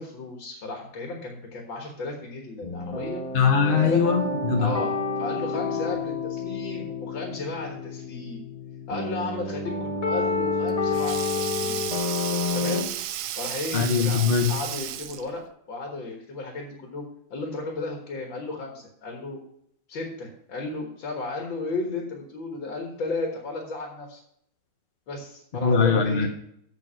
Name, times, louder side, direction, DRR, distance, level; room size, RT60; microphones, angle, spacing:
voice 1, 0.0-3.2 3.6-4.1 4.6-8.4 8.9-11.8 12.5-12.9 13.4-17.0 17.3-19.4 19.9-24.2 25.1-26.3, left 3 dB, 80° left, 1 dB, 2.3 m, -34 dB
sound 1, 2.6-12.8, left 4 dB, 25° left, 1.1 m, -29 dB
voice 2, 3.3-4.7 13.7-14.5 25.6-26.3, left 6 dB, 45° left, 3 dB, 0.7 m, -21 dB
Sink (filling or washing), 10.3-15.4, right 11 dB, 75° right, 1.2 m, -33 dB
8.1 x 7.3 x 6.2 m, 0.72 s
omnidirectional pair, 2.1 m